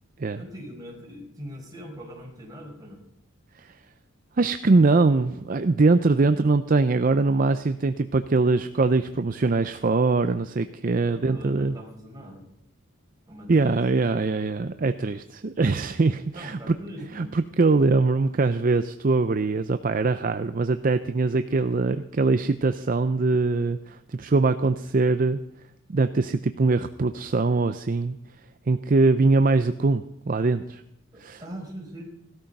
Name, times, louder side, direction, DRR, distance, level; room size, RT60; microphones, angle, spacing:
voice 1, 0.3-3.0 11.1-12.5 13.3-13.8 16.3-17.3 31.4-32.1, equal, 15° right, -1 dB, 4.6 m, -41 dB
voice 2, 4.4-11.7 13.5-16.7 17.1-25.4 25.9-28.2 28.7-30.8 31.2-31.4, right 3 dB, 40° right, 10 dB, 0.5 m, -22 dB
17.0 x 13.0 x 5.4 m, 0.77 s
head